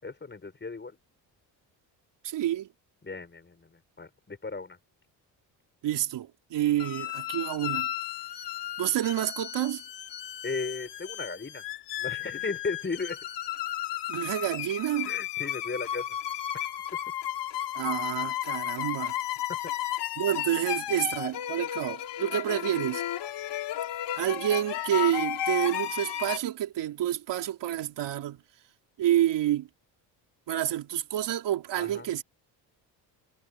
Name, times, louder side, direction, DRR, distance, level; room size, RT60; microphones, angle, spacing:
voice 1, 0.0-1.0 3.0-4.8 10.4-11.6 12.0-13.2 15.1-16.1 19.5-19.6 31.7-32.1, left 4 dB, 25° left, 5.6 m, -36 dB
voice 2, 2.2-2.7 5.8-7.9 8.8-9.8 14.1-15.1 17.7-19.1 20.2-23.0 24.2-28.4 29.0-29.7 30.5-32.2, right 12 dB, 70° right, 3.1 m, -28 dB
sound 1, 6.8-26.4, left 12 dB, 70° left, 5.5 m, -34 dB
cardioid pair, 80°, 43 cm